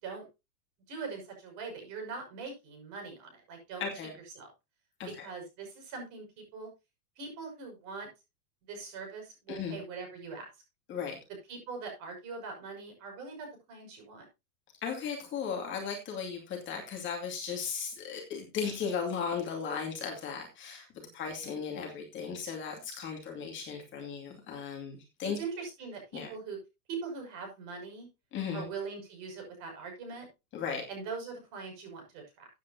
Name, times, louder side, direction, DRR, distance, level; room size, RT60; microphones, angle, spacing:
voice 1, 0.9-3.8 4.3-4.5 5.2-6.7 7.2-8.1 8.7-10.5 11.5-14.2 25.2-26.6 26.9-28.1 28.5-30.3 30.9-32.5, right 4 dB, 40° right, 2 dB, 6.2 m, -42 dB
voice 2, 3.8-4.1 5.0-5.3 9.5-9.8 10.9-11.2 14.8-20.9 21.1-25.4 26.1-26.3 28.3-28.7 30.5-30.8, left 6 dB, 25° left, 1 dB, 2.5 m, -36 dB
15.0 x 9.1 x 2.8 m, 0.25 s
supercardioid pair, 150°, 47 cm